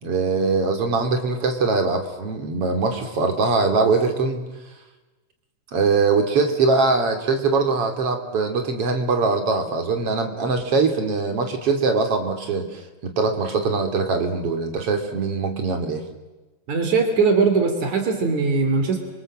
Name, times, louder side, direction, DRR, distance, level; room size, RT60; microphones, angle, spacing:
voice 1, 0.0-4.5 5.7-16.0, right 4 dB, 50° right, 4 dB, 3.8 m, -22 dB
voice 2, 16.7-19.0, right 4 dB, 80° right, 5 dB, 4.5 m, -20 dB
30.0 x 25.0 x 7.6 m, 1.2 s
omnidirectional pair, 3.3 m